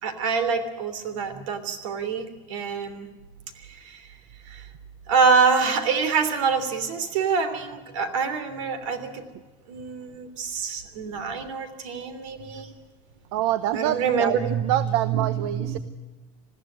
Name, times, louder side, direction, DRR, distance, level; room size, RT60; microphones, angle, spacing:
voice 1, 0.0-3.1 3.7-4.1 4.4-4.7 5.1-9.2 9.7-12.7 13.7-14.6 15.1-15.8, right 5 dB, 80° right, 10 dB, 3.2 m, -26 dB
voice 2, 13.3-15.8, right 12 dB, 65° right, 13 dB, 0.9 m, -26 dB
21.0 x 15.0 x 8.8 m, 1.2 s
supercardioid pair, 150°, 16 cm